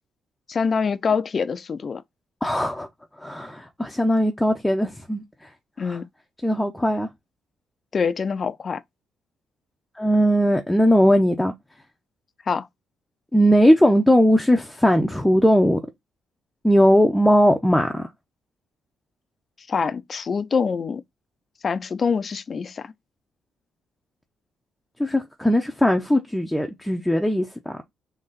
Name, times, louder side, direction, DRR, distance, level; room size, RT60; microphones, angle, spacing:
voice 1, 0.5-2.0 5.8-6.1 7.9-8.8 12.5-12.7 19.7-21.0 21.6-22.9, left 5 dB, 45° left, 0.5 m, -25 dB
voice 2, 2.4-2.9 3.2-5.2 5.8-6.0 6.4-7.1 10.0-11.5 13.3-15.8 16.6-18.1 25.0-27.8, equal, 5° left, 0.6 m, -19 dB
4.1 x 2.9 x 3.8 m
cardioid pair, 90°, 0 cm